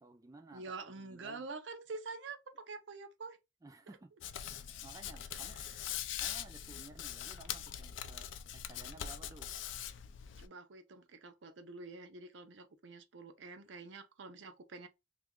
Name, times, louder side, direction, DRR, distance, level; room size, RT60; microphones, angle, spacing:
voice 1, 0.0-1.5 3.6-4.1 4.8-5.6 6.2-9.5, right 2 dB, 20° right, 0.3 m, -55 dB
voice 2, 0.5-3.4 5.5-5.7 10.4-14.9, right 4 dB, 70° right, 0.5 m, -47 dB
Hands, 4.2-10.5, left 10 dB, 85° left, 0.4 m, -42 dB
2.7 x 2.4 x 3.6 m
head